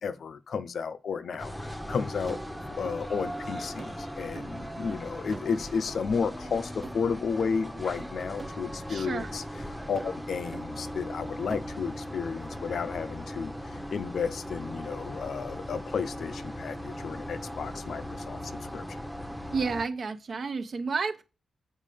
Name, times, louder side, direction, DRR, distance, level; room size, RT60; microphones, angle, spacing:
voice 1, 0.0-2.4 2.7-9.4 9.9-19.0, left 5 dB, 65° left, 0.6 m, -33 dB
sound 1, 1.3-1.4 1.9-2.0 2.3-3.1 3.4-3.5 3.8-5.0 5.3-6.0 6.4-6.6 6.8-7.1 7.4-7.5 8.0-8.6 9.0-9.1 9.5-9.6 10.0-10.2 10.5-10.7 11.1-11.2 11.5-11.8, right 4 dB, 35° right, 0.5 m, -45 dB
sound 2, 1.4-19.8, equal, ahead, 0.9 m, -38 dB
voice 2, 8.9-9.3 19.5-21.2, right 4 dB, 55° right, 1.0 m, -31 dB
7.5 x 4.8 x 5.1 m
cardioid pair, 95°, 0 cm